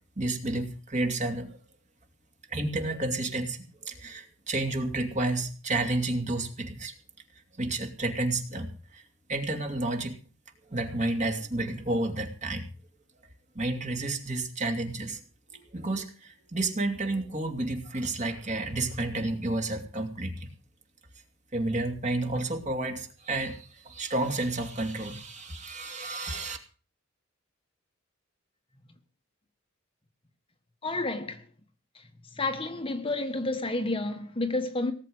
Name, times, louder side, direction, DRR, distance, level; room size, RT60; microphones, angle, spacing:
voice 1, 0.0-1.6 2.5-6.9 7.6-9.0 9.3-10.2 10.7-12.7 13.5-15.2 15.5-20.5 21.5-26.6, right 2 dB, 35° right, 2.7 m, -31 dB
voice 2, 30.8-31.5 31.9-34.9, left 2 dB, 25° left, 1.4 m, -30 dB
18.5 x 7.6 x 7.9 m
head